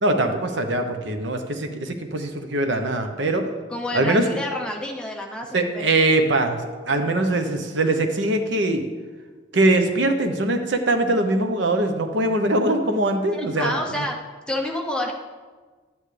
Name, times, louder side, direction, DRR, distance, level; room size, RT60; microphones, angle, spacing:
voice 1, 0.0-3.5 3.9-4.3 5.5-6.6 6.9-8.9 9.5-14.1, right 2 dB, 70° right, 6 dB, 0.8 m, -22 dB
voice 2, 3.7-5.8 13.3-14.2 14.5-15.1, left 1 dB, 5° left, 0 dB, 0.7 m, -28 dB
11.5 x 8.9 x 3.3 m, 1.4 s
head